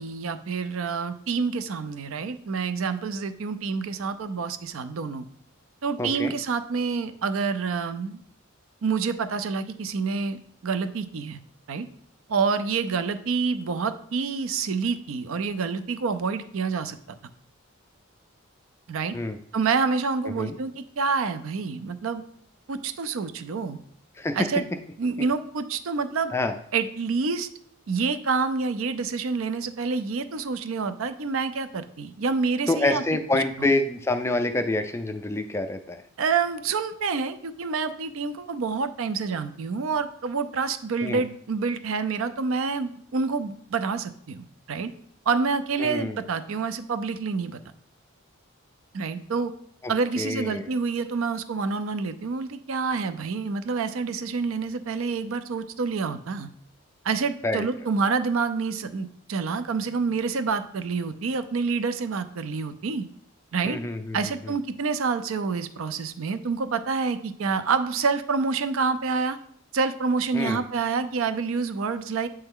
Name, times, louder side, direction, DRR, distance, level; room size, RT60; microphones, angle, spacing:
voice 1, 0.0-5.2 5.8-8.2 8.8-10.4 10.6-11.4 11.7-11.9 12.3-17.0 18.9-19.2 19.5-22.2 22.7-23.8 24.4-24.6 25.0-26.3 26.7-27.5 27.9-33.0 33.6-33.7 36.2-44.9 45.3-47.6 48.9-49.5 49.9-56.5 57.0-63.1 63.5-63.8 64.1-69.4 69.7-72.3, right 5 dB, 75° right, 11 dB, 0.5 m, -27 dB
voice 2, 6.0-6.3 19.1-19.4 20.3-20.5 24.2-24.4 26.3-26.6 32.7-36.0 41.0-41.2 45.8-46.2 50.2-50.7 57.4-57.6 63.6-64.2 64.4-64.5 70.3-70.6, left 2 dB, 10° left, 7 dB, 0.3 m, -27 dB
7.9 x 3.3 x 3.7 m, 0.65 s
head